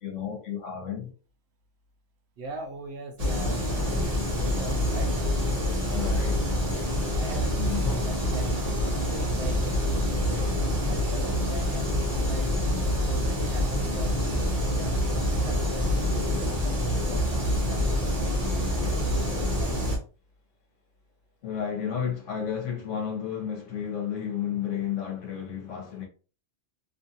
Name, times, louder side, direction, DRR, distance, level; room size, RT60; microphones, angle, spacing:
voice 1, 0.0-1.1 5.9-6.6 7.6-8.0 21.4-26.1, left 8 dB, 80° left, 1.3 m, -32 dB
voice 2, 2.4-4.1 4.4-5.1 7.2-9.8 10.3-12.4 13.1-14.1 14.6-17.2 17.5-18.6 18.9-19.8, right 3 dB, 65° right, 0.9 m, -41 dB
sound 1, 3.2-20.0, left 1 dB, 35° right, 1.0 m, -26 dB
3.0 x 2.5 x 2.7 m
omnidirectional pair, 1.2 m